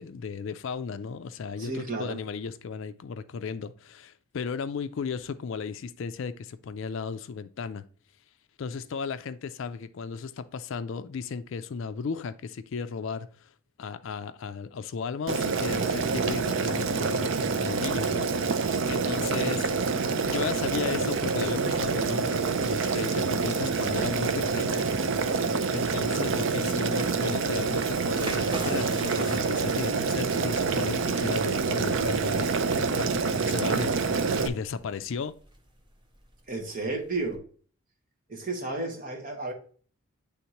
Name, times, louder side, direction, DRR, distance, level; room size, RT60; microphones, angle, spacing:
voice 1, 0.0-7.8 8.6-13.5 13.8-19.7 20.2-24.9 25.7-35.4, left 5 dB, 60° left, 0.4 m, -35 dB
voice 2, 1.6-2.2 36.5-37.4 38.3-39.5, right 2 dB, 40° right, 1.2 m, -32 dB
Boiling, 15.3-34.5, right 4 dB, 55° right, 0.4 m, -27 dB
sound 1, 28.1-37.4, right 2 dB, 20° right, 0.6 m, -43 dB
9.3 x 3.5 x 2.9 m
head